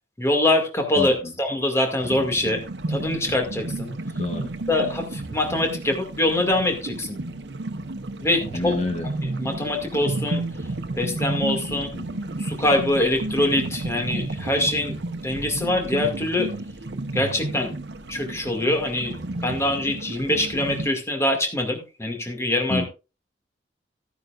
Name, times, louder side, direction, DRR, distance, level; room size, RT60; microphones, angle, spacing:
voice 1, 0.2-2.6 2.9-3.9 4.7-7.2 8.2-8.8 9.2-10.4 11.0-11.9 12.4-15.0 15.2-16.5 17.1-17.7 18.1-19.1 19.4-22.8, left 1 dB, 15° left, 3 dB, 2.2 m, -24 dB
voice 2, 1.0-1.3 4.2-4.5 8.4-9.1 11.7-12.1 22.7-22.8, left 1 dB, 40° left, 3 dB, 1.6 m, -29 dB
sound 1, 2.0-20.9, right 2 dB, 70° right, 0.9 m, -32 dB
14.5 x 9.7 x 2.5 m, 0.29 s
head